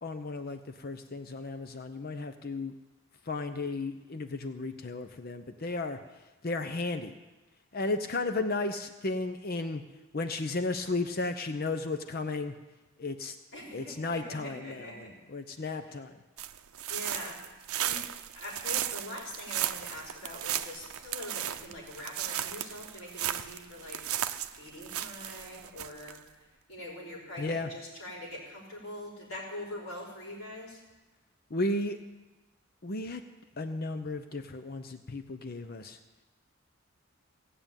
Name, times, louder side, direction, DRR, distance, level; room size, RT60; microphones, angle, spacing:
voice 1, 0.0-2.7 3.3-6.0 6.4-7.1 7.7-9.8 10.1-12.5 13.0-13.3 13.7-15.1 15.3-16.1 27.4-27.7 31.5-32.0 32.8-33.2 33.6-36.0, left 2 dB, 45° left, 8 dB, 0.7 m, -34 dB
voice 2, 13.5-15.1 15.6-16.0 16.9-18.1 18.4-24.0 24.5-30.8, left 1 dB, 65° left, -5 dB, 5.4 m, -43 dB
sound 1, 16.4-26.2, right 11 dB, 80° right, 0.6 m, -35 dB
16.5 x 6.8 x 8.9 m, 1.1 s
head